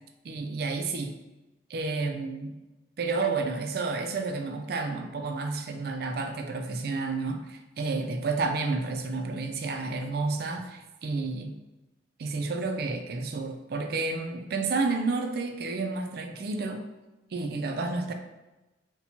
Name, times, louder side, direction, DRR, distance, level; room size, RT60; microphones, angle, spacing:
voice 1, 0.2-1.1 1.7-2.5 3.0-11.6 12.2-16.9 17.3-18.1, right 3 dB, 60° right, 5 dB, 0.4 m, -30 dB
4.2 x 2.2 x 2.7 m, 1.1 s
head